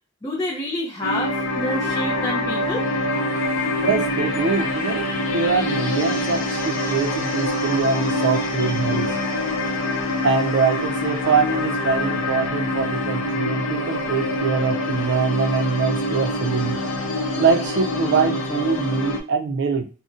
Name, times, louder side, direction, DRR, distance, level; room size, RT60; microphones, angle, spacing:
voice 1, 0.2-2.9, left 1 dB, 15° left, -4 dB, 0.5 m, -28 dB
sound 1, 1.0-19.2, left 1 dB, 60° left, 0.6 m, -25 dB
voice 2, 3.8-9.1 10.2-16.8 17.4-19.9, right 5 dB, 55° right, 7 dB, 0.4 m, -23 dB
2.6 x 2.1 x 3.6 m, 0.35 s
head